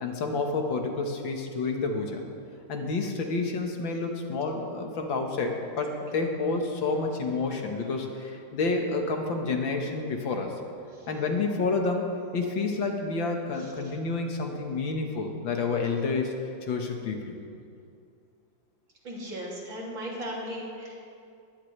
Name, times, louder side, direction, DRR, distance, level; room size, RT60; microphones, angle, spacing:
voice 1, 0.0-2.2 2.7-10.5 11.1-16.3 16.6-17.4, left 3 dB, 85° left, 2 dB, 2.2 m, -29 dB
voice 2, 19.0-21.1, equal, 85° right, -4 dB, 3.6 m, -36 dB
21.5 x 15.5 x 3.3 m, 2.4 s
omnidirectional pair, 2.0 m